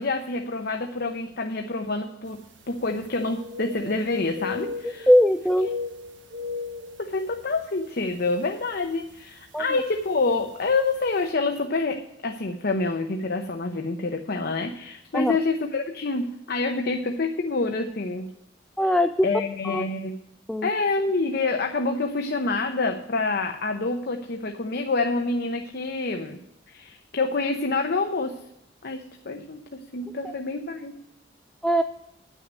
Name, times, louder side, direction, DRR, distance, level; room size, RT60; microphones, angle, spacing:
voice 1, 0.0-5.1 7.0-18.3 19.2-20.2 20.6-26.4 26.7-28.4 28.8-31.0, left 3 dB, 60° left, 4 dB, 0.8 m, -27 dB
sound 1, 2.4-2.5 2.7-4.0 4.3-5.2 5.5-7.6 8.0-8.2 8.8-9.1 10.2-10.3 10.6-10.7, left 4 dB, 85° right, 1.1 m, -36 dB
voice 2, 5.1-5.7 9.5-9.6 15.1-15.4 18.8-19.3 19.6-19.8 20.5-20.7 30.2-30.3 31.6-31.8, equal, 5° left, 8 dB, 0.3 m, -20 dB
10.5 x 6.4 x 7.4 m, 0.85 s
head